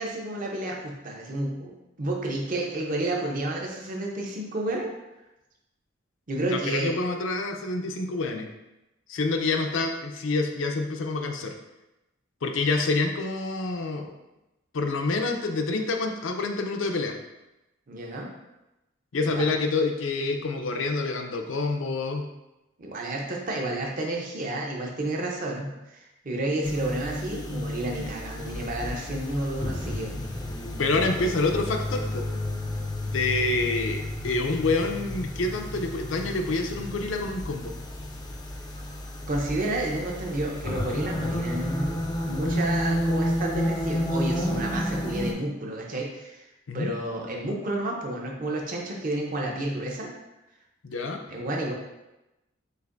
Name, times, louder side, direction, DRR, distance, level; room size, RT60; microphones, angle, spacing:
voice 1, 0.0-4.9 6.3-6.9 17.9-18.3 19.3-19.5 22.8-30.1 39.3-46.4 46.7-50.1 51.3-51.7, right 1 dB, 40° right, 0 dB, 0.7 m, -31 dB
voice 2, 6.4-8.5 9.1-11.5 12.4-14.1 14.7-17.2 19.1-22.2 30.8-32.2 33.0-37.7 46.7-47.0 50.8-51.2, left 3 dB, 70° left, 3 dB, 0.5 m, -27 dB
sound 1, 26.6-45.3, left 1 dB, 20° left, 0.4 m, -31 dB
6.5 x 2.6 x 2.5 m, 0.97 s
head